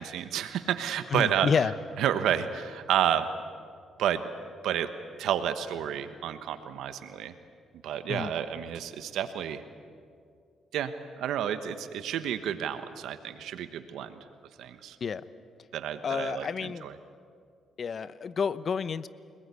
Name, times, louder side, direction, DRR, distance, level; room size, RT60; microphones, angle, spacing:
voice 1, 0.0-1.5 2.0-3.3 4.0-4.2 4.6-4.9 5.2-7.3 7.8-9.6 10.7-14.2 14.6-15.0 15.7-16.9, right 10 dB, 80° right, 10 dB, 1.2 m, -30 dB
voice 2, 1.1-1.7 8.1-8.3 15.0-15.2 16.0-16.8 17.8-19.1, left 6 dB, 45° left, 15 dB, 0.9 m, -29 dB
29.5 x 20.5 x 8.4 m, 2.3 s
cardioid pair, 90°, 0 cm